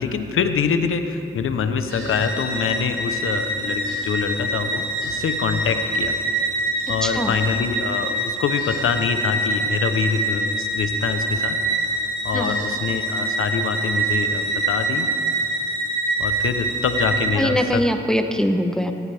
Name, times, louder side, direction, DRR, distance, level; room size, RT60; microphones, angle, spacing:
voice 1, 0.0-6.2 6.9-11.6 12.2-15.1 16.2-17.8, left 6 dB, 85° left, 8 dB, 0.9 m, -25 dB
sound 1, 1.9-17.3, right 2 dB, 75° right, 4.0 m, -25 dB
voice 2, 7.0-7.4 12.3-12.6 17.4-18.9, equal, 5° left, 6 dB, 1.0 m, -22 dB
18.0 x 16.0 x 3.5 m, 2.8 s
cardioid pair, 50°, 21 cm